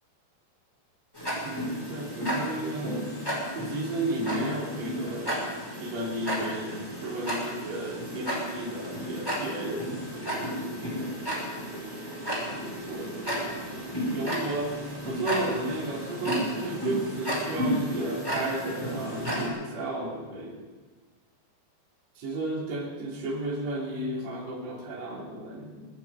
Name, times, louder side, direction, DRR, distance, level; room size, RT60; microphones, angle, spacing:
Tick-tock, 1.1-19.5, equal, 5° left, 5.6 m, -33 dB
voice 1, 1.9-3.1 3.5-5.5 5.8-11.3 12.5-14.8 15.1-20.6 22.2-25.9, right 2 dB, 40° right, -5 dB, 4.3 m, -33 dB
sound 1, 10.8-17.5, right 6 dB, 85° right, 3.7 m, -47 dB
22.0 x 13.5 x 4.9 m, 1.4 s
omnidirectional pair, 5.0 m